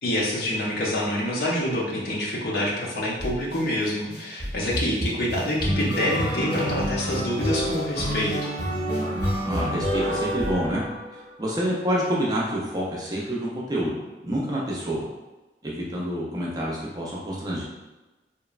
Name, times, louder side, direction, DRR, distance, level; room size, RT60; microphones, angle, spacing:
voice 1, 0.0-8.3, left 1 dB, 60° left, -3 dB, 0.6 m, -26 dB
sound 1, 3.2-3.6 4.1-11.3, equal, 15° left, 0.9 m, -28 dB
voice 2, 9.4-10.8 11.1-14.0 14.2-15.1 15.6-17.6, equal, 20° right, -5 dB, 0.5 m, -27 dB
2.9 x 2.1 x 2.3 m, 1.1 s
head